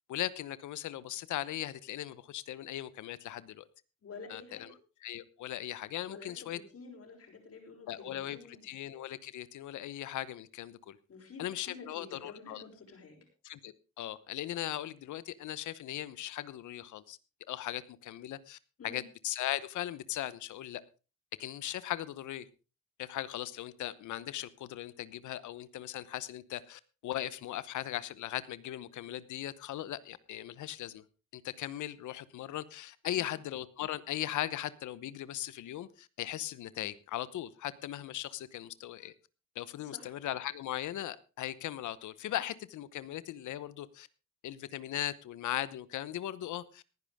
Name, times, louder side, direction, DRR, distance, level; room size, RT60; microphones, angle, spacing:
voice 1, 0.1-3.7 4.3-4.7 5.0-6.6 7.9-11.0 11.4-12.6 13.4-17.2 17.5-18.6 18.8-20.8 21.4-22.5 23.0-31.0 31.3-39.1 39.5-44.1 44.4-46.8, left 13 dB, 75° left, 17 dB, 1.0 m, -38 dB
voice 2, 4.0-4.7 6.1-8.7 11.1-13.2 18.8-19.0 33.1-33.4 39.8-40.1, left 4 dB, 50° left, 4 dB, 6.1 m, -49 dB
19.0 x 10.5 x 3.6 m, 0.32 s
cardioid pair, 90°, 30 cm